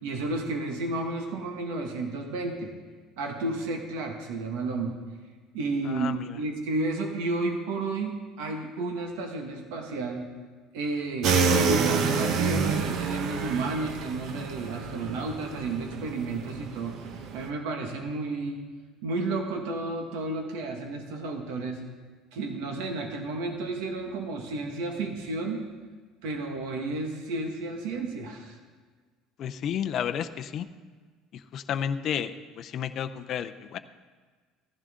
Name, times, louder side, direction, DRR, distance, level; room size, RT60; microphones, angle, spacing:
voice 1, 0.0-2.7 3.2-5.0 5.5-10.3 10.7-18.6 19.0-21.8 22.3-25.6 26.2-28.6, right 2 dB, 85° right, 3 dB, 1.8 m, -32 dB
voice 2, 5.9-6.3 29.4-30.7 31.5-33.8, left 8 dB, 35° left, 9 dB, 0.5 m, -31 dB
sound 1, 11.2-17.5, right 5 dB, 45° right, 0.9 m, -28 dB
15.0 x 15.0 x 3.7 m, 1.5 s
cardioid pair, 170°, 0 cm